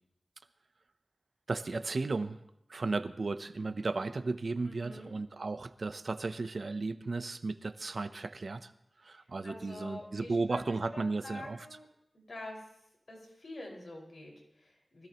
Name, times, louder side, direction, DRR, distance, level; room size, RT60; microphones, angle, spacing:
voice 1, 1.5-2.4 2.7-8.7 9.0-11.6, right 3 dB, 70° right, 11 dB, 0.8 m, -34 dB
voice 2, 4.7-5.1 9.1-10.6 10.9-11.9 12.1-12.6 13.1-15.1, left 1 dB, 70° left, -1 dB, 5.4 m, -47 dB
24.0 x 16.5 x 3.1 m, 0.77 s
cardioid pair, 50°, 0 cm